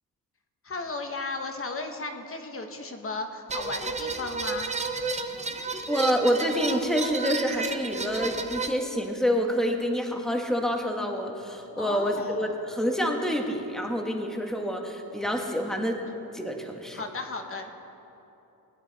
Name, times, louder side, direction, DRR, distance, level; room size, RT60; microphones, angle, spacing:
voice 1, 0.6-4.7 11.8-12.5 16.9-17.7, left 3 dB, 35° left, 4 dB, 1.0 m, -35 dB
sound 1, 3.5-8.7, right 4 dB, 20° right, 0.6 m, -31 dB
voice 2, 5.9-16.0 16.3-17.0, equal, ahead, 2 dB, 1.1 m, -27 dB
20.0 x 9.9 x 4.0 m, 3.0 s
wide cardioid pair, 145°, 38 cm